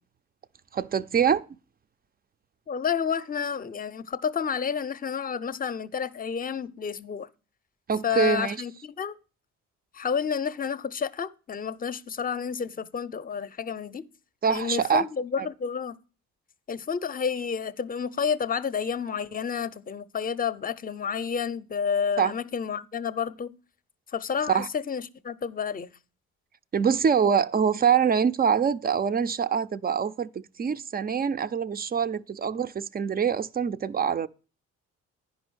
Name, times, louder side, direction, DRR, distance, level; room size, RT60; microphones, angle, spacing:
voice 1, 0.7-1.4 7.9-8.6 14.4-15.0 15.4-15.5 22.2-22.3 24.5-24.7 26.7-34.3, right 7 dB, 30° right, 0.4 m, -24 dB
voice 2, 2.7-7.3 8.0-9.1 9.9-14.1 14.5-16.0 16.7-23.6 24.1-25.9, left 7 dB, 30° left, 0.6 m, -30 dB
10.0 x 5.2 x 6.2 m
cardioid pair, 90°, 30 cm